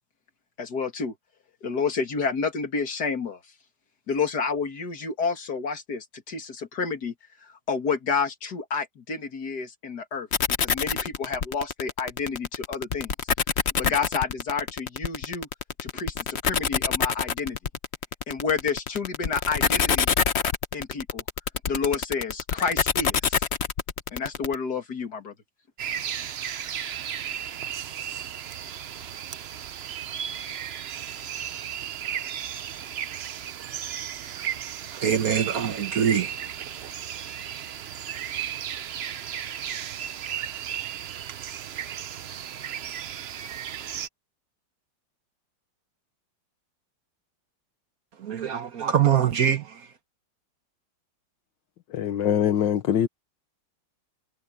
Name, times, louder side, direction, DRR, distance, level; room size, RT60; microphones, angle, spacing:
voice 1, 0.6-1.1 1.6-3.4 4.1-7.1 7.4-10.3 10.6-13.1 13.8-15.5 15.8-17.6 18.3-20.1 20.7-21.2 21.7-23.4 24.1-25.3 26.5-26.6, left 5 dB, 60° left, 2.8 m, -29 dB
sound 1, 10.3-24.5, left 6 dB, 45° left, 1.0 m, -25 dB
sound 2, 25.8-44.1, right 9 dB, 85° right, 0.5 m, -35 dB
voice 2, 34.9-36.5 48.2-49.9, right 8 dB, 55° right, 1.4 m, -24 dB
voice 3, 51.9-53.1, left 9 dB, 80° left, 1.8 m, -23 dB
omnidirectional pair, 2.0 m